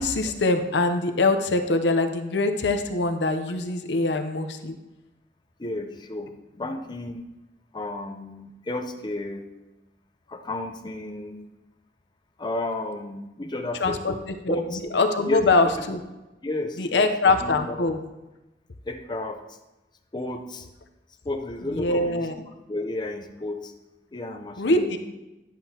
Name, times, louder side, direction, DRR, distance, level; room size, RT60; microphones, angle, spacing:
voice 1, 0.0-4.8 13.8-14.1 14.4-14.6 14.9-16.0 16.8-18.0 21.7-22.4 24.6-25.0, left 2 dB, 80° left, 6 dB, 0.7 m, -23 dB
voice 2, 5.6-7.2 7.7-9.4 10.3-11.5 12.4-14.8 15.3-15.5 16.4-17.1 17.4-17.9 18.9-19.4 20.1-20.7 21.2-22.3 22.7-23.7 24.1-25.0, left 2 dB, 25° left, 4 dB, 0.6 m, -32 dB
11.0 x 7.6 x 2.9 m, 1.0 s
head